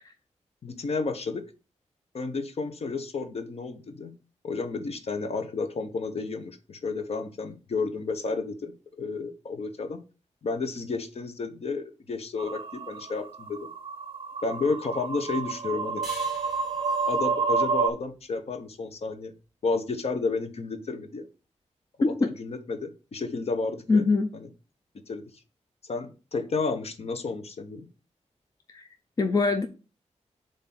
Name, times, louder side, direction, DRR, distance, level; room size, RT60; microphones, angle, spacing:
voice 1, 0.6-1.5 2.1-4.1 4.4-10.0 10.4-13.7 14.4-16.0 17.1-19.3 19.6-21.3 22.0-24.0 24.3-24.5 25.1-25.2 25.8-27.8, left 4 dB, 60° left, 0.9 m, -31 dB
sound 1, 12.4-17.9, right 5 dB, 50° right, 0.4 m, -29 dB
sound 2, 16.0-19.2, right 1 dB, ahead, 1.6 m, -47 dB
voice 2, 23.9-24.3 28.7-28.8 29.2-29.7, left 3 dB, 30° left, 0.5 m, -23 dB
7.3 x 2.7 x 5.9 m
wide cardioid pair, 170°, 12 cm